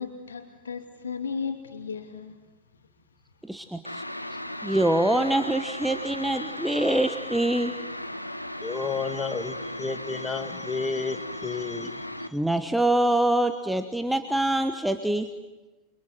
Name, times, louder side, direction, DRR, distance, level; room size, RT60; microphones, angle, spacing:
voice 1, 0.0-2.4, left 5 dB, 70° left, 2.6 m, -35 dB
voice 2, 3.4-4.0 4.6-7.7 12.3-15.3, right 1 dB, 5° right, 1.2 m, -24 dB
sound 1, 3.8-12.3, left 1 dB, 85° left, 1.4 m, -36 dB
voice 3, 8.6-12.0, left 4 dB, 15° left, 2.0 m, -31 dB
30.0 x 24.0 x 7.9 m
figure-of-eight pair, 90°, 0 cm